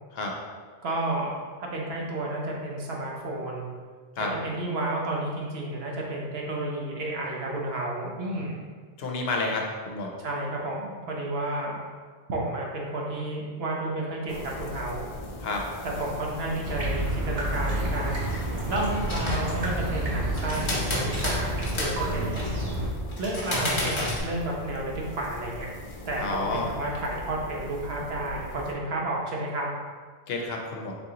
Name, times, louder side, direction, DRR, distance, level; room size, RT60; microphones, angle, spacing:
voice 1, 0.8-3.7 4.4-8.6 10.2-11.8 12.3-15.1 15.8-18.2 18.7-22.4 23.2-25.7 26.1-29.7, right 2 dB, 75° right, -2 dB, 1.0 m, -31 dB
voice 2, 9.0-10.1 15.4-15.6 22.2-22.3 26.2-26.7 30.3-31.0, left 3 dB, 75° left, 0 dB, 0.9 m, -30 dB
sound 1, 14.3-28.7, left 1 dB, 55° left, 0.4 m, -40 dB
sound 2, 16.6-22.9, right 1 dB, 40° right, 0.8 m, -30 dB
sound 3, 18.8-19.6 20.4-22.0 22.3-22.6 23.1-24.2, left 1 dB, 30° left, 0.9 m, -31 dB
4.0 x 3.7 x 2.8 m, 1.6 s
omnidirectional pair, 1.0 m